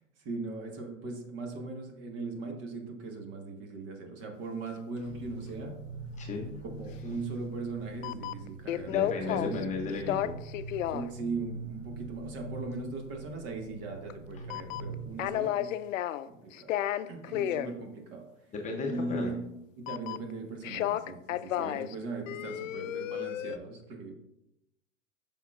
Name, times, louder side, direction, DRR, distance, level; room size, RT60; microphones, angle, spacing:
voice 1, 0.0-5.8 6.8-8.9 9.3-9.9 10.9-15.7 16.3-16.7 17.1-18.3 18.8-19.4 19.8-24.1, right 3 dB, 35° right, 2 dB, 1.6 m, -39 dB
sound 1, 4.7-4.8 8.0-9.6 9.9-11.1 14.1-14.2 14.5-16.3 16.5-17.7 19.9-20.3 20.6-21.9 22.3-23.6, left 12 dB, 75° left, 0.5 m, -32 dB
sound 2, 5.0-15.1, right 2 dB, 15° right, 2.0 m, -43 dB
voice 2, 6.2-6.5 8.9-10.3 14.3-14.4 18.5-19.3, left 3 dB, 20° left, 0 dB, 0.8 m, -35 dB
8.0 x 6.0 x 2.5 m, 0.83 s
hypercardioid pair, 125°, 39 cm